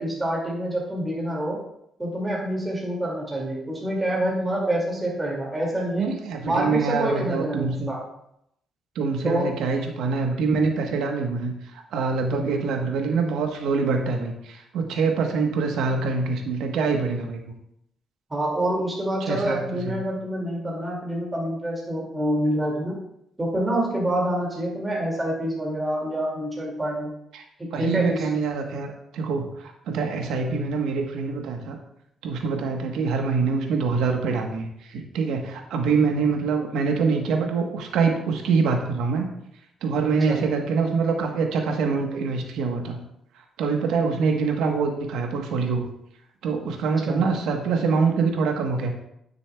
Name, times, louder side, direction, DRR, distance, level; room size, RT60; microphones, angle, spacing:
voice 1, 0.0-1.6 2.0-6.1 6.4-8.0 9.2-9.5 18.3-22.9 23.4-27.1 27.6-28.3 40.3-40.4 47.0-47.2, right 1 dB, 20° right, -3 dB, 2.3 m, -26 dB
voice 2, 6.0-7.9 8.9-17.5 19.2-20.0 27.3-27.4 27.7-31.8 32.2-39.3 39.8-43.0 43.6-45.9 46.4-48.9, right 4 dB, 85° right, 3 dB, 1.1 m, -25 dB
9.7 x 6.9 x 2.3 m, 0.78 s
cardioid pair, 90°, 0 cm